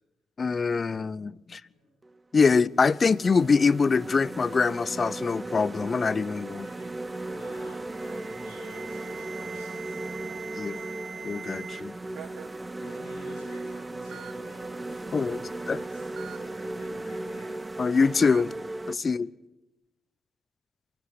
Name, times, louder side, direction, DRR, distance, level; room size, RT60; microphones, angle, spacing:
voice 1, 0.4-1.6 2.3-6.7 10.6-10.8 11.2-12.0 15.1-15.4 15.7-15.8 17.8-18.5 18.9-19.3, left 5 dB, 45° left, 0.8 m, -24 dB
sound 1, 2.0-2.2 2.8-18.9, right 2 dB, 20° right, 1.2 m, -37 dB
voice 2, 6.5-11.0 12.8-17.6 19.0-19.2, left 2 dB, 80° left, 6.6 m, -51 dB
Alarm, 7.8-11.8 12.1-12.6 13.4-13.5 14.1-14.3 16.2-16.4 18.2-18.4, right 7 dB, 65° right, 1.2 m, -42 dB
24.5 x 17.0 x 9.9 m
hypercardioid pair, 45°, 0 cm